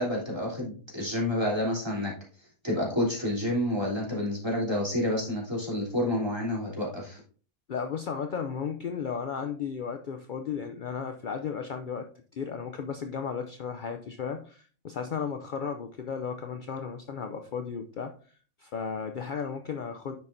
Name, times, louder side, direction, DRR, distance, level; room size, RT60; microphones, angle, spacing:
voice 1, 0.0-2.1 2.6-7.2, left 1 dB, 15° right, -5 dB, 3.2 m, -29 dB
voice 2, 7.7-12.1 12.3-18.1 18.6-20.2, left 6 dB, 60° left, 6 dB, 0.5 m, -34 dB
9.6 x 6.8 x 2.6 m, 0.42 s
omnidirectional pair, 1.5 m